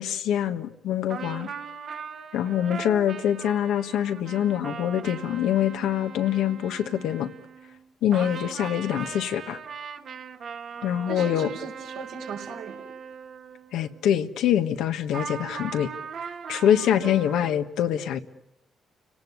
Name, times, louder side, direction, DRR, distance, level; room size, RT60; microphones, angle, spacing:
voice 1, 0.0-1.5 2.3-7.3 8.0-9.6 10.8-11.5 13.7-15.9 16.5-18.2, left 10 dB, 85° left, 8 dB, 1.4 m, -25 dB
sound 1, 1.1-7.9 8.1-14.0 15.1-17.5, right 6 dB, 65° right, 2.0 m, -39 dB
voice 2, 10.7-12.8 17.0-17.1, right 6 dB, 85° right, 1 dB, 4.8 m, -39 dB
30.0 x 18.5 x 9.7 m, 0.87 s
cardioid pair, 75°, 0 cm